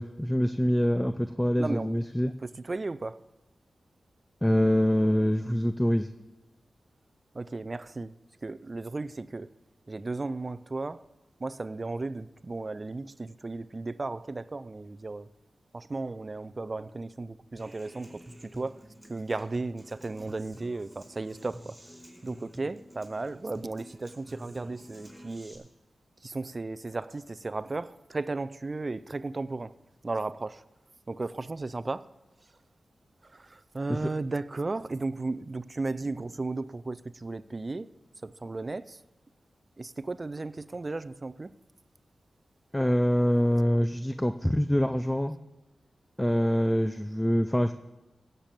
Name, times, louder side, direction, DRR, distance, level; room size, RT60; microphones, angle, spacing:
voice 1, 0.0-2.3 4.4-6.1 42.7-45.4 46.2-47.7, equal, 10° left, 0.6 m, -25 dB
voice 2, 1.6-1.9 2.3-3.2 7.3-8.2 8.4-9.5 9.9-11.0 11.4-15.3 15.7-18.2 18.5-18.8 19.1-21.7 22.2-25.7 26.2-29.7 30.0-30.6 31.1-32.1 33.2-37.9 38.2-39.0 39.8-41.5, right 3 dB, 40° right, 0.5 m, -35 dB
Human voice / Acoustic guitar, 17.6-25.5, equal, 10° right, 4.7 m, -49 dB
16.5 x 6.8 x 7.6 m
cardioid pair, 60°, 0 cm